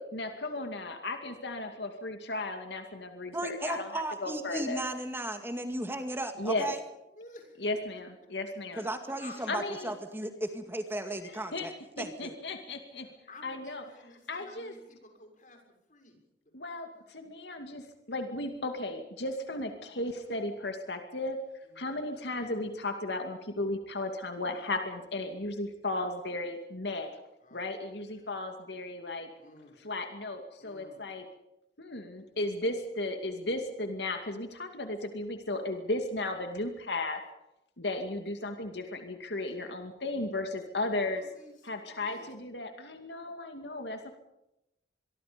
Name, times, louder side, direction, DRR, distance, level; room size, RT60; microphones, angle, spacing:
voice 1, 0.1-4.8 6.4-6.7 7.6-8.9 9.5-9.9 11.5-11.7 12.0-13.1 13.4-13.8 14.3-14.7 16.5-17.8 18.1-21.4 21.8-27.1 27.5-29.3 29.8-31.2 31.8-37.2 37.8-41.2 41.6-44.1, left 2 dB, 70° left, 5 dB, 2.4 m, -35 dB
voice 2, 3.3-6.8 8.8-12.3, right 1 dB, 15° right, 6 dB, 2.2 m, -35 dB
voice 3, 7.1-7.7 9.2-9.9 13.3-15.6 15.9-16.2 17.0-17.1 21.6-21.9 26.0-26.4 27.4-28.3 29.4-29.8 30.6-31.1 41.1-42.3, left 2 dB, 45° left, 4 dB, 6.6 m, -53 dB
25.0 x 23.5 x 5.3 m, 0.88 s
head